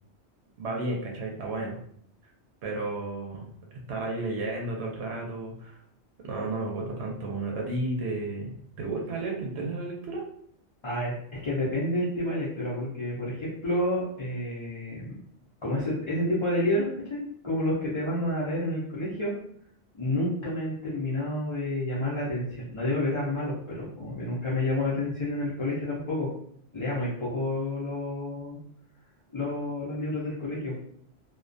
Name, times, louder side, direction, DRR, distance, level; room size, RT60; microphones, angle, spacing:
voice 1, 0.6-1.8 2.6-3.5 3.9-5.8 6.2-10.2, right 2 dB, 75° right, -1 dB, 0.8 m, -32 dB
voice 2, 10.8-15.1 15.6-19.3 19.9-26.3 26.7-28.6 29.3-30.7, left 1 dB, 40° left, -8 dB, 0.4 m, -29 dB
2.3 x 2.1 x 2.5 m, 0.65 s
omnidirectional pair, 1.2 m